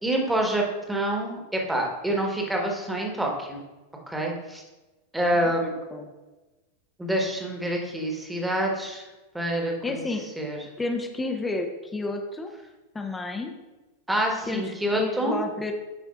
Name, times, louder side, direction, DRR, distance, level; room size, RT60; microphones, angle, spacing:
voice 1, 0.0-3.6 4.1-4.6 5.1-5.7 7.0-9.0 9.3-10.0 10.4-10.6 14.1-15.4, right 1 dB, 5° right, 0 dB, 1.2 m, -27 dB
voice 2, 5.4-6.1 9.8-10.3 10.8-12.5 12.9-13.5 14.5-15.7, left 2 dB, 10° left, 4 dB, 0.6 m, -31 dB
9.3 x 4.4 x 2.4 m, 1.1 s
figure-of-eight pair, 90°, 0 cm